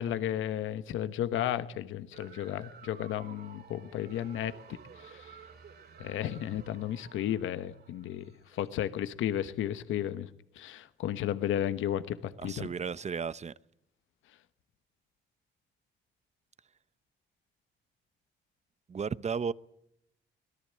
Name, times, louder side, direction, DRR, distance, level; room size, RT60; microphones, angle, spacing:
voice 1, 0.0-4.5 5.0-5.3 6.0-10.3 10.5-12.7, left 11 dB, 85° left, 1.1 m, -33 dB
sound 1, 2.1-8.7, right 7 dB, 55° right, 3.8 m, -53 dB
voice 2, 12.4-13.5 18.9-19.5, right 6 dB, 35° right, 0.8 m, -34 dB
24.5 x 18.0 x 8.7 m
cardioid pair, 90°, 20 cm